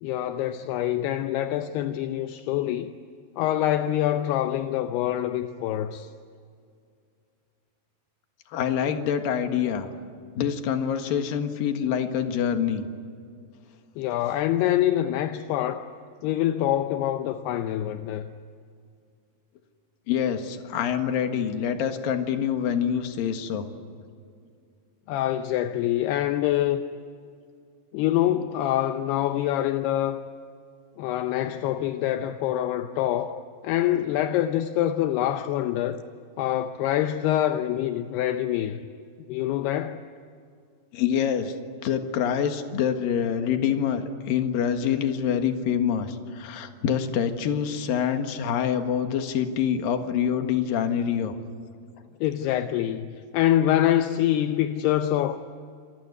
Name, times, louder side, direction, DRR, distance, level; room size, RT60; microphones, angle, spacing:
voice 1, 0.0-2.9 3.4-6.1 14.0-15.9 16.2-18.3 25.1-26.8 27.9-30.2 31.0-36.0 36.4-38.8 39.3-40.0 52.2-55.4, left 12 dB, 80° left, 2.8 m, -25 dB
voice 2, 8.5-9.9 10.4-12.9 20.1-23.7 40.9-41.5 41.8-51.3, left 8 dB, 65° left, 3.2 m, -26 dB
27.5 x 21.0 x 9.6 m
omnidirectional pair, 4.8 m